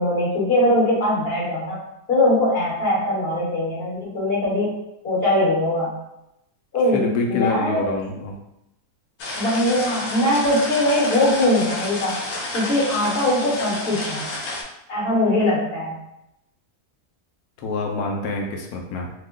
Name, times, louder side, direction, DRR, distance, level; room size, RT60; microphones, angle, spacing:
voice 1, 0.0-1.8 2.1-4.8 5.0-6.0 6.7-7.8 9.4-12.2 12.5-14.3 14.9-16.0, left 1 dB, 45° left, -7 dB, 1.3 m, -21 dB
voice 2, 6.9-8.4 17.6-19.1, left 3 dB, 85° left, 1 dB, 1.1 m, -26 dB
sound 1, 9.2-14.6, left 2 dB, 60° left, 0.8 m, -30 dB
3.0 x 2.1 x 3.6 m, 0.85 s
omnidirectional pair, 1.5 m